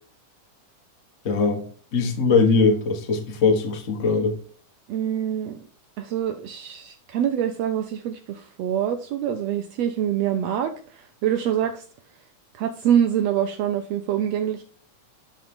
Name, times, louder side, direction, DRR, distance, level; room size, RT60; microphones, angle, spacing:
voice 1, 1.2-4.4, left 4 dB, 55° left, 0.8 m, -21 dB
voice 2, 4.9-5.6 6.0-11.8 12.5-14.6, right 9 dB, 80° right, 1.5 m, -25 dB
10.5 x 3.9 x 3.7 m
omnidirectional pair, 3.5 m